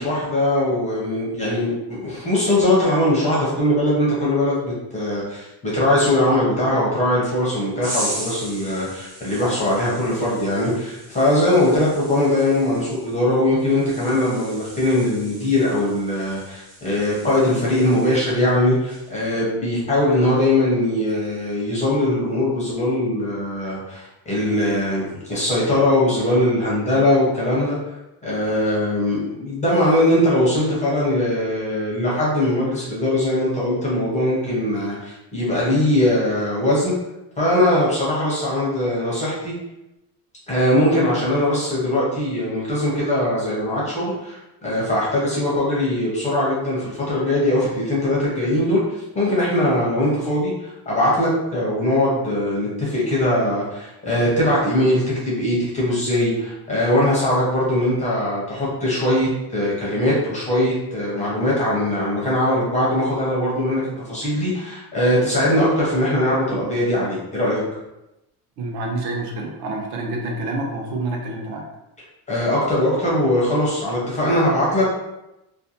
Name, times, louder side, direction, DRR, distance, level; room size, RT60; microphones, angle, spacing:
voice 1, 0.0-27.8 28.2-36.9 37.4-39.5 40.5-67.6 72.3-74.9, left 1 dB, 20° left, -6 dB, 0.4 m, -21 dB
sound 1, 7.8-18.5 18.8-19.2, right 1 dB, 30° right, 0.9 m, -37 dB
voice 2, 68.6-71.6, right 2 dB, 65° right, 0 dB, 0.7 m, -27 dB
2.4 x 2.1 x 2.7 m, 0.92 s
cardioid pair, 175°, 41 cm